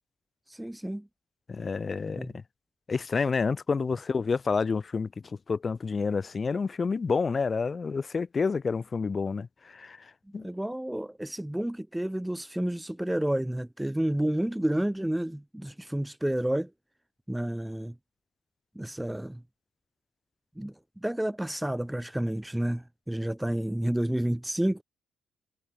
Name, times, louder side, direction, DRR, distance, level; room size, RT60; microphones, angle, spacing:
voice 1, 0.5-1.1 2.1-2.3 10.4-16.7 17.3-17.9 18.8-19.4 20.6-20.7 21.0-24.8, right 1 dB, 5° right, 1.0 m, -30 dB
voice 2, 1.5-2.4 2.9-5.1 5.5-10.0 10.3-10.5, left 4 dB, 35° left, 2.3 m, -29 dB
cardioid pair, 90°, 0 cm